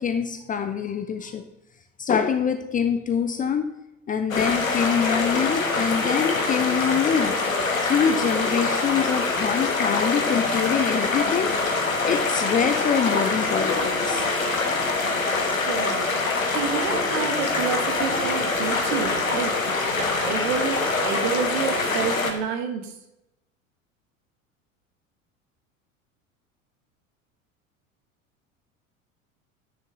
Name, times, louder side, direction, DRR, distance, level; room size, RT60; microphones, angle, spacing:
voice 1, 0.0-1.4 2.0-3.7 4.1-7.3 7.8-14.3, left 7 dB, 20° left, 7 dB, 0.7 m, -25 dB
sound 1, 4.3-22.3, left 3 dB, 75° left, 1.4 m, -24 dB
voice 2, 15.7-22.9, right 7 dB, 50° right, 6 dB, 1.5 m, -29 dB
9.6 x 6.8 x 3.7 m, 0.90 s
figure-of-eight pair, 75°, 40 cm